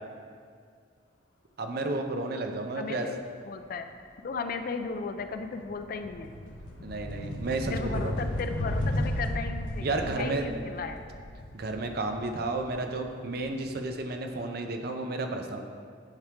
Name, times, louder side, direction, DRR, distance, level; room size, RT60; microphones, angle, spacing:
voice 1, 1.6-3.1 6.8-8.2 9.8-10.5 11.5-15.6, right 2 dB, 55° right, 5 dB, 0.6 m, -32 dB
voice 2, 2.7-3.2 3.4-3.9 4.2-6.3 7.7-11.0, left 4 dB, 50° left, 8 dB, 0.4 m, -35 dB
sound 1, 4.3-4.6 4.9-13.8, left 1 dB, 85° left, 1.0 m, -34 dB
8.7 x 4.7 x 3.6 m, 2.1 s
head